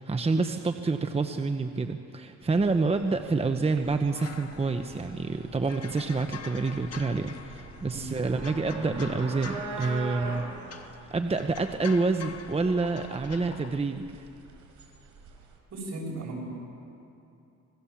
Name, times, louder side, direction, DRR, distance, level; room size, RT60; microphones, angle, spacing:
voice 1, 0.0-10.4 11.1-14.2, right 3 dB, 20° right, 6 dB, 1.0 m, -28 dB
sound 1, 2.4-15.6, right 3 dB, 85° right, 5.0 m, -43 dB
sound 2, 4.1-13.8, left 7 dB, 55° left, 1.8 m, -46 dB
voice 2, 7.9-8.4 8.7-8.9 9.8-9.9 15.7-16.4, right 2 dB, 60° right, -1 dB, 7.1 m, -38 dB
26.5 x 20.5 x 7.3 m, 2.8 s
cardioid pair, 90°, 30 cm